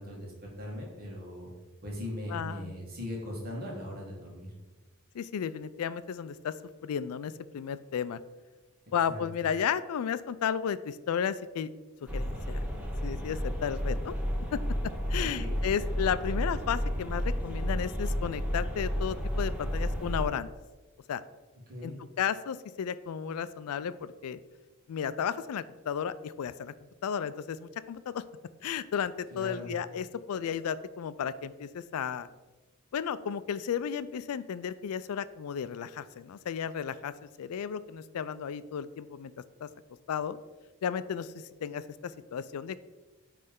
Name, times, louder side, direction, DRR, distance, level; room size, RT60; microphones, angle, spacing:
voice 1, 0.0-1.5 1.8-4.5 9.1-9.2 15.2-15.6 21.7-22.0 29.3-29.7, left 1 dB, 45° right, -2 dB, 1.7 m, -39 dB
voice 2, 2.3-2.7 5.1-6.5 6.8-8.2 8.9-11.7 12.1-12.6 13.0-14.1 14.5-14.6 15.1-20.5 21.1-21.2 21.8-24.4 24.9-26.7 27.0-28.2 28.6-32.3 32.9-39.3 39.6-39.7 40.1-40.4 40.8-42.8, left 8 dB, 80° left, 15 dB, 0.3 m, -33 dB
sound 1, 12.1-20.2, equal, 5° right, 0.8 m, -32 dB
9.4 x 3.3 x 3.7 m, 1.2 s
head